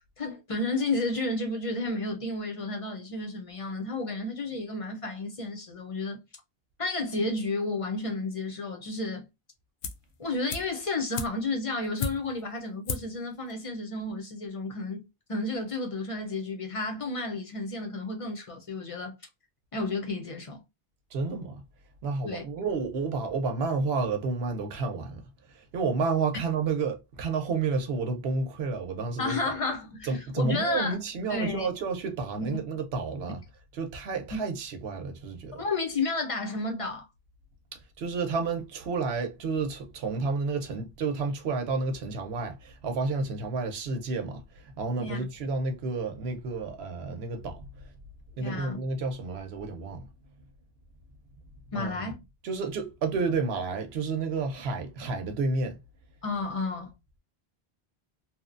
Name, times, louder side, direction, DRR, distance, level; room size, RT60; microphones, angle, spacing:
voice 1, 0.2-6.2 6.8-9.3 10.2-19.1 19.7-20.6 22.2-22.4 29.2-31.0 31.3-31.7 32.4-32.6 34.3-34.4 35.6-37.1 45.0-45.2 48.4-48.8 51.7-52.2 56.2-56.9, left 2 dB, 40° left, 0.6 m, -32 dB
sound 1, 9.8-10.1 10.5-12.5 12.8-13.2 13.5-13.6, left 5 dB, 70° left, 0.8 m, -35 dB
voice 2, 21.1-21.6 22.0-25.2 25.5-29.4 30.0-33.4 33.8-35.6 37.7-47.6 48.3-50.1 51.7-52.0 52.4-55.8, right 4 dB, 75° right, 0.9 m, -30 dB
3.0 x 2.1 x 2.4 m
omnidirectional pair, 1.1 m